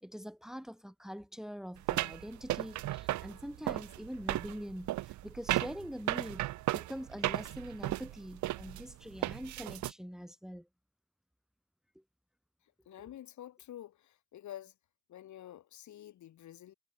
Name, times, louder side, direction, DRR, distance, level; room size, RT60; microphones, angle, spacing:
voice 1, 0.0-6.4 6.7-10.7, equal, ahead, 2.3 m, -44 dB
sound 1, 1.9-9.9, right 16 dB, 70° right, 0.6 m, -35 dB
voice 2, 12.9-14.7 15.1-16.7, left 12 dB, 70° left, 2.4 m, -49 dB
cardioid pair, 90°, 30 cm